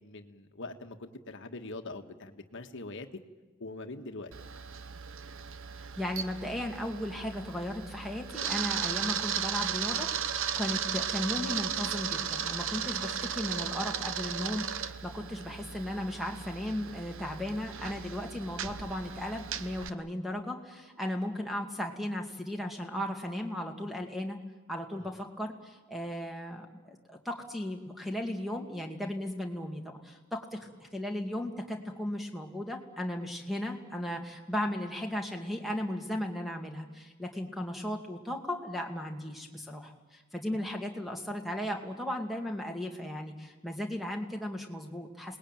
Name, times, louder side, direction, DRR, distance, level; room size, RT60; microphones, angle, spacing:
voice 1, 0.0-3.2 3.6-4.3 24.9-25.1, left 2 dB, 60° left, 6 dB, 1.6 m, -43 dB
Camera, 4.3-19.9, right 8 dB, 60° right, 0.9 m, -36 dB
voice 2, 6.0-24.4 24.7-45.4, left 1 dB, ahead, 3 dB, 2.4 m, -36 dB
28.0 x 20.0 x 9.2 m, 1.2 s
head